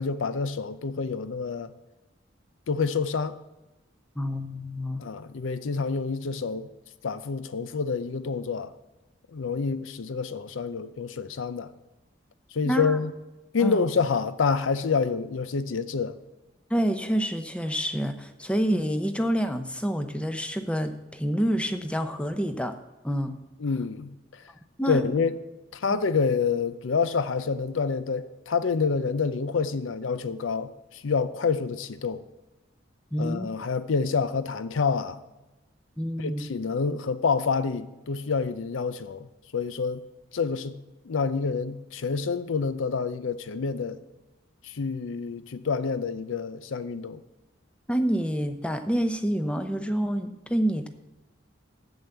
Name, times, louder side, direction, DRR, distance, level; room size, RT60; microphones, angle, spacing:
voice 1, 0.0-1.7 2.7-3.4 5.0-6.7 7.0-8.7 9.3-11.7 12.5-13.1 13.5-16.1 23.6-24.4 24.9-25.4 25.7-32.2 33.2-35.2 36.2-39.3 39.5-40.0 40.3-40.8 41.1-44.0 44.6-47.2, left 5 dB, 85° left, 0.5 m, -27 dB
voice 2, 4.2-5.1 12.6-13.0 13.6-13.8 16.7-22.8 23.0-23.4 24.8-25.1 25.9-26.0 33.1-33.5 36.0-36.5 47.9-50.9, equal, 5° left, 0.6 m, -27 dB
7.9 x 7.2 x 7.8 m
head